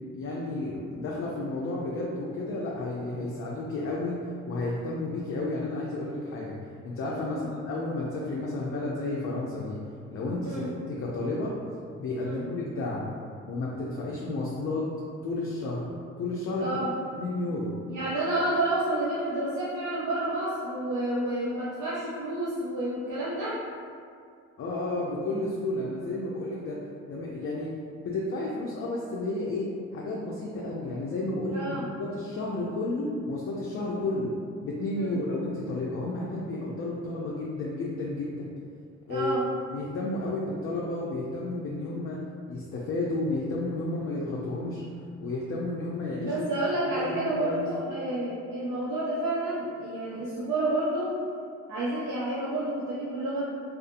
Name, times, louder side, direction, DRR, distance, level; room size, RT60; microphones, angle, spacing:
voice 1, 0.1-4.2 4.5-6.6 6.8-9.8 10.1-10.6 10.9-11.5 12.0-13.1 13.5-14.9 15.2-15.9 16.2-16.7 17.2-17.7 24.6-26.8 27.1-27.7 28.0-34.3 34.6-38.5 39.1-39.3 39.7-42.2 42.5-44.8 45.2-46.4 47.0-47.7, left 2 dB, 50° left, -4 dB, 0.4 m, -32 dB
voice 2, 16.6-16.9 17.9-23.6 31.5-31.9 34.9-35.2 39.1-39.5 46.2-51.1 51.7-53.5, right 1 dB, 80° right, -9 dB, 0.6 m, -30 dB
2.6 x 2.4 x 2.5 m, 2.2 s
cardioid pair, 90°, 30 cm